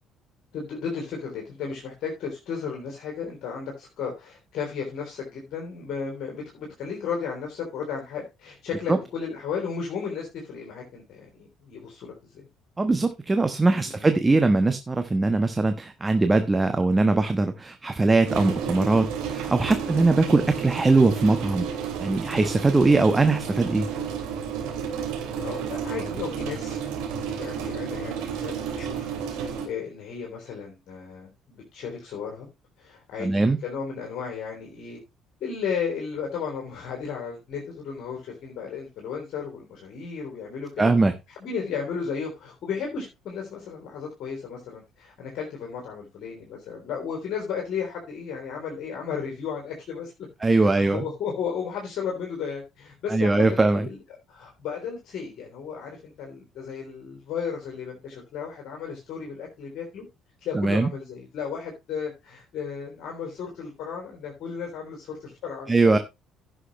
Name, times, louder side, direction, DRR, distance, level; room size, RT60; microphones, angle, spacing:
voice 1, 0.5-12.5 13.8-14.3 25.4-32.5 32.8-35.0 35.4-40.7 41.4-50.1 50.5-54.0 54.3-60.0 60.4-66.0, left 6 dB, 55° left, 0 dB, 3.4 m, -34 dB
voice 2, 12.8-21.7 22.0-23.9 33.2-33.6 40.8-41.1 50.4-51.0 53.1-53.9 60.5-60.9 65.7-66.0, right 3 dB, 20° right, 8 dB, 1.2 m, -21 dB
sound 1, 18.2-29.7, right 7 dB, 65° right, 3.1 m, -32 dB
16.5 x 6.4 x 3.1 m, 0.24 s
figure-of-eight pair, 50°, 0 cm